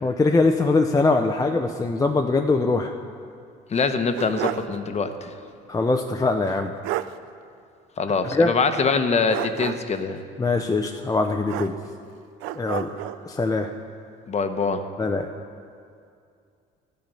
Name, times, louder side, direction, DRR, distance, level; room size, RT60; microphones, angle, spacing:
voice 1, 0.0-2.9 5.7-6.7 8.3-8.5 10.4-11.7 12.6-12.9 13.2-13.7 15.0-15.3, left 3 dB, 15° left, 4 dB, 0.7 m, -22 dB
voice 2, 3.7-5.3 8.0-10.2 14.3-14.8, left 4 dB, 35° left, 8 dB, 1.0 m, -24 dB
sound 1, 3.7-4.8 5.1-5.2 6.5-6.6 6.8-7.2 9.3-10.0 11.5-12.1 12.4-13.2, right 14 dB, 80° right, 0.5 m, -31 dB
14.0 x 9.0 x 5.5 m, 2.4 s
supercardioid pair, 95°, 20 cm